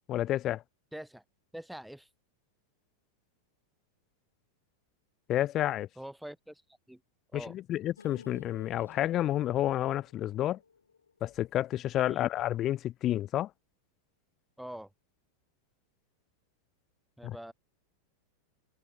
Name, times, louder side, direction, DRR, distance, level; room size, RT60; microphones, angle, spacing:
voice 1, 0.1-0.6 5.3-5.9 7.3-10.6 11.2-13.5 17.2-17.4, left 13 dB, 30° left, 0.3 m, -30 dB
voice 2, 0.9-1.2 1.5-2.1 6.0-6.6 6.9-7.0 7.3-7.6 12.1-12.3 14.6-14.9 17.2-17.5, right 1 dB, ahead, 1.7 m, -44 dB
sound 1, 8.0-12.1 12.4-12.5 12.8-12.9, left 5 dB, 75° left, 7.2 m, -55 dB
figure-of-eight pair, 90°, 0 cm